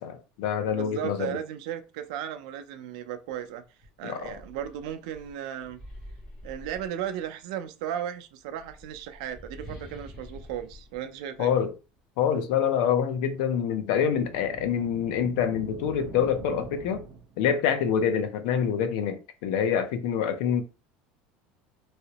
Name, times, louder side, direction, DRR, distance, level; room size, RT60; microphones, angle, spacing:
voice 1, 0.0-1.4 4.0-4.3 11.4-11.7 12.2-17.0 17.4-20.6, left 8 dB, 65° left, 0.6 m, -26 dB
voice 2, 0.7-3.6 4.0-5.8 6.4-11.5, right 10 dB, 75° right, 0.5 m, -35 dB
sound 1, 3.3-3.4 3.8-7.4 8.4-12.0, equal, 20° left, 1.1 m, -47 dB
sound 2, 13.8-17.6, right 5 dB, 35° right, 0.7 m, -43 dB
3.1 x 2.8 x 2.9 m
cardioid pair, 180°, 4 cm